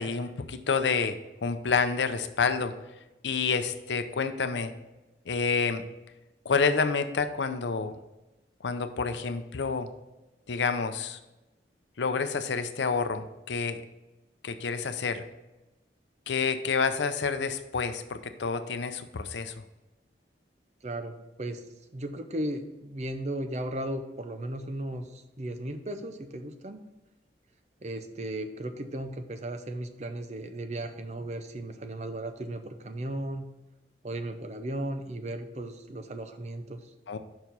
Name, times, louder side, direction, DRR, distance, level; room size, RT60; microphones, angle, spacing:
voice 1, 0.0-2.7 3.2-4.7 5.3-5.8 6.4-7.9 8.6-9.9 10.5-11.2 12.0-13.8 14.4-15.2 16.3-19.5 37.1-37.2, left 5 dB, 85° left, 9 dB, 0.6 m, -28 dB
voice 2, 20.8-21.6 21.9-26.8 27.8-33.5 34.0-36.9, right 1 dB, 40° right, 8 dB, 0.6 m, -36 dB
5.8 x 4.7 x 5.2 m, 1.0 s
head